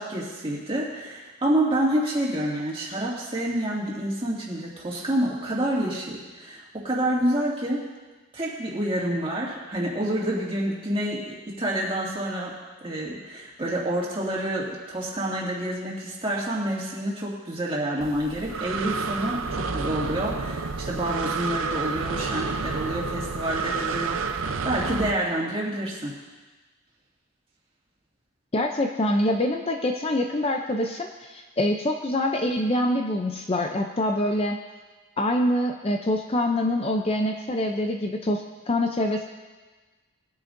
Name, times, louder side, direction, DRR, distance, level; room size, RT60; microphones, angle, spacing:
voice 1, 0.0-7.8 8.3-12.5 12.8-26.1, right 1 dB, 25° right, -5 dB, 2.1 m, -28 dB
Breathing, 18.0-25.1, right 4 dB, 65° right, 0.6 m, -30 dB
voice 2, 28.5-34.6 35.2-39.2, left 1 dB, 25° left, 3 dB, 0.4 m, -25 dB
19.5 x 9.6 x 2.6 m, 1.3 s
head